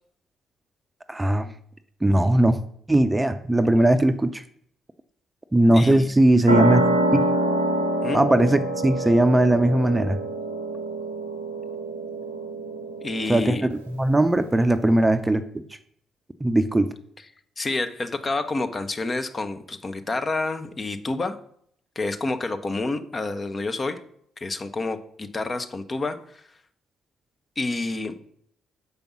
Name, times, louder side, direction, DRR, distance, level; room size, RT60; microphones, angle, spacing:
voice 1, 1.1-1.5 2.0-2.6 2.9-4.4 5.5-6.8 7.1-7.3 8.1-10.2 13.3-13.6 13.9-15.6 16.4-16.9, right 1 dB, 15° right, 10 dB, 0.6 m, -19 dB
voice 2, 5.7-6.1 8.0-8.2 13.0-13.7 17.6-21.4 22.0-24.0 24.4-26.4 27.6-28.2, left 3 dB, 30° left, 8 dB, 0.8 m, -29 dB
sound 1, 6.5-13.7, right 1 dB, 85° right, 0.7 m, -26 dB
7.0 x 5.2 x 6.1 m, 0.65 s
figure-of-eight pair, 40°, 0 cm